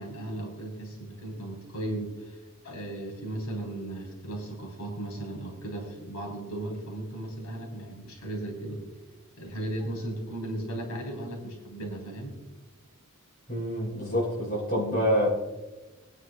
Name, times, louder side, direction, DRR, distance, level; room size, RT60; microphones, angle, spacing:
voice 1, 0.0-2.4 2.6-8.8 9.4-12.3, right 1 dB, 85° left, -1 dB, 3.9 m, -36 dB
voice 2, 13.5-15.3, equal, 40° left, -3 dB, 4.4 m, -26 dB
24.0 x 10.0 x 2.3 m, 1.1 s
head